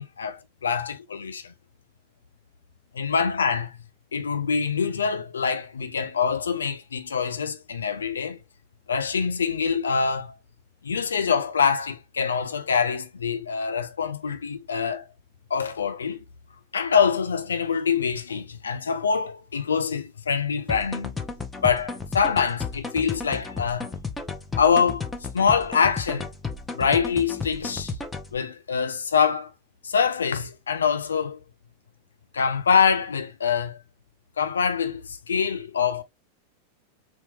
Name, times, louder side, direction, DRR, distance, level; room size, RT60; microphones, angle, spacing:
voice 1, 0.0-1.5 2.9-3.8 4.1-8.4 8.9-10.3 10.8-15.1 15.5-16.2 16.7-21.2 21.6-23.9 24.6-25.1 25.3-26.3 26.7-28.0 28.3-29.5 29.8-31.4 32.3-33.8 34.4-36.0, left 6 dB, 70° left, 0.6 m, -25 dB
sound 1, 20.7-28.4, left 4 dB, 10° left, 0.7 m, -34 dB
4.1 x 2.9 x 3.1 m
figure-of-eight pair, 90°, 0 cm